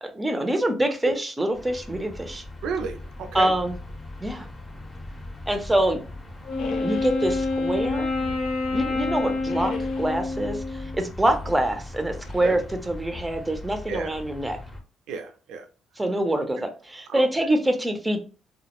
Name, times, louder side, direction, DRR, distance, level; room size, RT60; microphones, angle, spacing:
voice 1, 0.0-2.4 3.3-3.8 4.2-4.5 5.5-6.0 6.8-8.1 8.7-14.6 16.0-18.2, right 1 dB, 10° right, 0.5 m, -25 dB
sound 1, 1.5-14.8, left 2 dB, 25° left, 0.7 m, -39 dB
voice 2, 2.6-3.5 12.4-12.6 13.9-14.1 15.1-15.6 16.6-16.7 17.1-17.2, right 5 dB, 90° right, 0.4 m, -31 dB
Wind instrument woodwind instrument, 6.4-11.0, left 3 dB, 90° left, 0.9 m, -27 dB
sound 2, 6.6-7.2 7.8-8.9 9.4-10.3 12.2-12.6 13.1-13.7, left 5 dB, 65° left, 0.4 m, -40 dB
2.2 x 2.0 x 2.9 m
cardioid pair, 90°, 0 cm